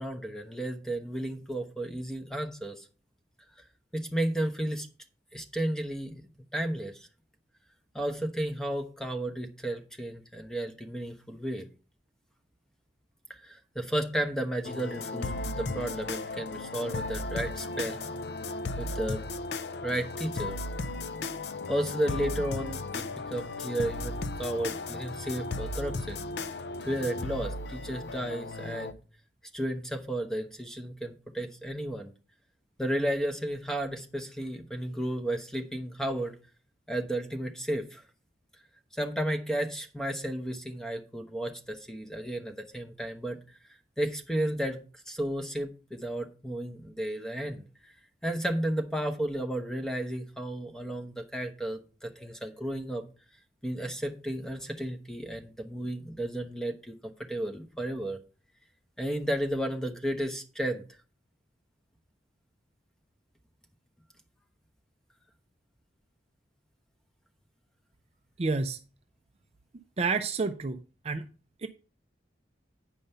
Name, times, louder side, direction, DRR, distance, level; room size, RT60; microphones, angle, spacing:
voice 1, 0.0-2.9 3.9-4.9 5.3-6.2 6.5-7.1 7.9-11.7 13.4-18.0 18.8-19.3 19.8-20.6 21.7-26.2 26.8-29.0 29.5-32.1 32.8-36.3 36.9-38.0 38.9-43.4 44.0-44.8 45.1-47.9 48.2-53.0 53.6-58.2 59.0-60.8, right 1 dB, 5° left, 1.0 m, -33 dB
sound 1, 14.6-28.9, left 2 dB, 65° left, 0.5 m, -35 dB
voice 2, 68.4-68.8 70.0-70.8 71.0-71.3 71.6-71.7, right 4 dB, 35° right, 0.4 m, -29 dB
9.1 x 5.3 x 5.5 m
head